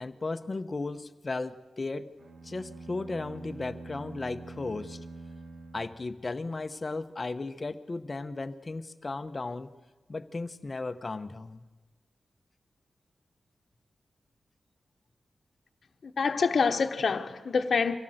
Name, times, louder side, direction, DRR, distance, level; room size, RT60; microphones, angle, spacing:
voice 1, 0.0-2.1 2.4-5.0 5.7-9.7 10.1-11.6, left 3 dB, 30° left, 0.9 m, -35 dB
sound 1, 2.2-6.6, right 2 dB, 75° right, 1.9 m, -45 dB
voice 2, 16.0-18.0, left 5 dB, 60° left, 1.1 m, -26 dB
24.5 x 17.0 x 7.9 m
wide cardioid pair, 150°, 0 cm